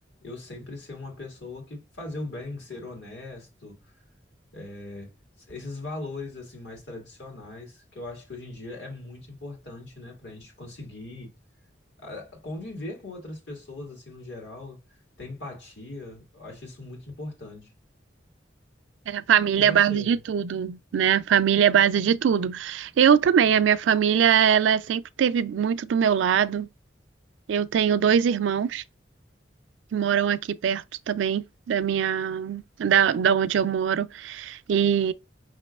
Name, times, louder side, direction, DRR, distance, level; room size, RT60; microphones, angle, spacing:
voice 1, 0.2-3.9 4.5-11.3 12.0-17.7 19.5-20.2, left 2 dB, 70° left, 1.8 m, -39 dB
voice 2, 19.1-26.7 27.5-28.8 29.9-35.1, right 8 dB, 85° right, 0.3 m, -22 dB
5.8 x 3.0 x 2.3 m
head